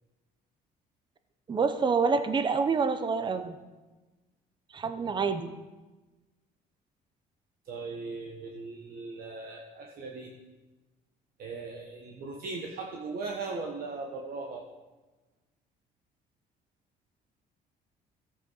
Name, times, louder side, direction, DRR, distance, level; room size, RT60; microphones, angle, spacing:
voice 1, 1.5-3.6 4.7-5.5, right 5 dB, 25° right, 9 dB, 0.8 m, -27 dB
voice 2, 7.6-10.3 11.4-14.6, right 3 dB, 60° right, 0 dB, 1.3 m, -38 dB
14.5 x 8.3 x 4.0 m, 1.2 s
cardioid pair, 110°, 17 cm